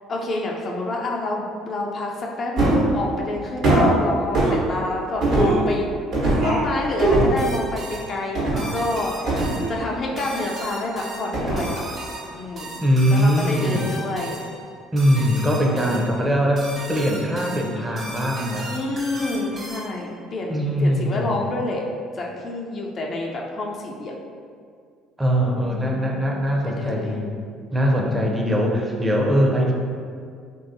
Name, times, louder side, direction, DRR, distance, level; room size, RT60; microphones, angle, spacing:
voice 1, 0.1-5.9 6.4-9.4 9.7-11.7 12.4-12.7 13.1-14.4 15.9-16.0 18.7-21.8 22.2-24.1 25.6-26.2 26.5-27.5 28.0-28.5, left 2 dB, 45° left, -1 dB, 0.4 m, -28 dB
sound 1, 2.6-2.9 3.6-3.9 4.3-4.6 5.2-5.6 6.1-6.6 7.0-7.4 8.4-8.7 9.3-10.1 11.3-11.8 12.2-12.3, right 2 dB, 65° right, 1.1 m, -20 dB
sound 2, 7.4-20.1, right 1 dB, 45° right, 1.1 m, -37 dB
voice 2, 12.8-13.8 14.9-18.7 20.5-21.4 25.2-27.4 27.7-29.7, equal, 15° right, -1 dB, 0.6 m, -21 dB
3.0 x 2.7 x 2.6 m, 2.2 s
hypercardioid pair, 65°, 0 cm